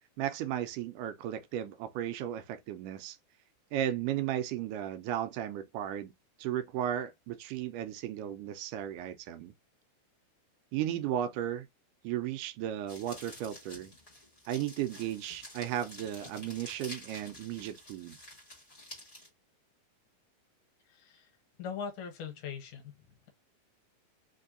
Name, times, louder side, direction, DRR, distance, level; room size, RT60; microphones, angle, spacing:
voice 1, 0.2-3.2 3.7-6.1 6.4-9.5 10.7-11.7 12.0-13.9 14.5-18.2, right 11 dB, 80° right, 1.9 m, -35 dB
sound 1, 12.9-19.3, left 1 dB, 55° left, 0.5 m, -50 dB
voice 2, 21.6-22.8, left 6 dB, 75° left, 2.4 m, -40 dB
5.3 x 2.2 x 2.5 m
omnidirectional pair, 3.8 m